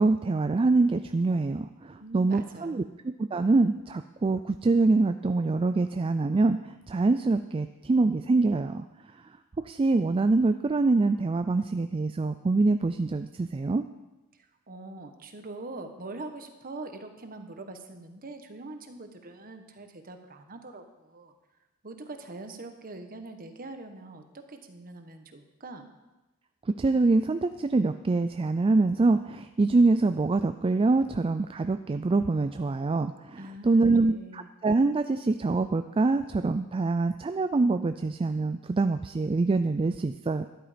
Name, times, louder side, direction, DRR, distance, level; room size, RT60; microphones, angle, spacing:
voice 1, 0.0-2.8 3.2-8.8 9.6-13.8 26.8-40.4, right 3 dB, 25° right, 9 dB, 0.3 m, -25 dB
voice 2, 2.0-2.9 14.7-21.3 21.8-25.8 33.4-34.5, right 2 dB, 40° right, 6 dB, 1.2 m, -43 dB
12.5 x 10.5 x 5.1 m, 1.1 s
head